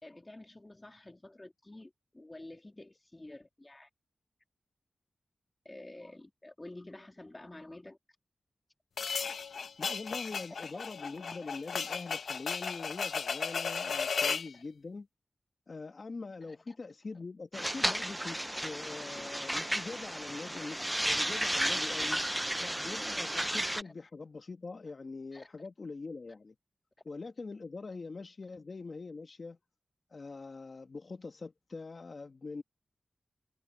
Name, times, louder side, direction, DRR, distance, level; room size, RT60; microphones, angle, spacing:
voice 1, 0.0-3.9 5.6-8.0 10.3-10.8 11.4-11.6 14.5-14.6 16.4-16.8 20.7-20.8 22.6-22.8 23.8-23.9 24.9-25.0 25.3-25.5, left 2 dB, 25° left, 2.9 m, -50 dB
sound 1, 9.0-14.5, left 5 dB, 85° left, 1.0 m, -35 dB
voice 2, 9.8-15.1 15.7-22.2 22.6-26.5 27.0-29.6 30.1-32.6, left 3 dB, 55° left, 1.4 m, -43 dB
sound 2, 17.5-23.8, equal, 10° right, 0.5 m, -33 dB
cardioid pair, 60°, 0 cm